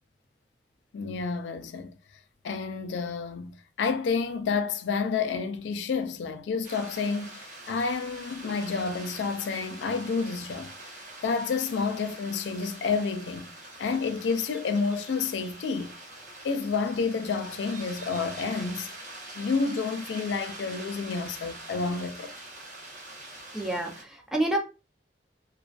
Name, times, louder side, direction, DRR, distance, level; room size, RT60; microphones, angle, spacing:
voice 1, 0.9-1.9 2.4-10.7 11.2-13.5 13.8-15.9 16.4-18.9 19.4-22.3, left 5 dB, 80° left, 0.3 m, -29 dB
sound 1, 6.6-24.0, right 2 dB, 45° right, 0.9 m, -44 dB
voice 2, 23.5-24.6, right 1 dB, 5° right, 0.4 m, -28 dB
2.3 x 2.3 x 2.3 m
head